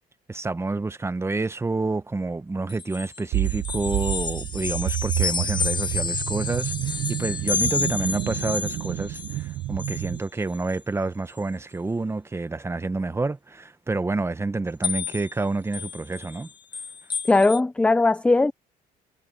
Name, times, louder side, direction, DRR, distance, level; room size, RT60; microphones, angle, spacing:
voice 1, 0.3-16.5, right 3 dB, 15° right, 1.0 m, -28 dB
sound 1, 2.7-9.4 9.8-10.2 10.5-10.8 11.4-11.5 14.8-15.3 15.7-17.6, left 5 dB, 25° left, 1.0 m, -30 dB
sound 2, 3.3-10.2, right 17 dB, 70° right, 0.7 m, -29 dB
voice 2, 17.3-18.5, left 3 dB, 5° left, 0.4 m, -19 dB
cardioid pair, 110°, 17 cm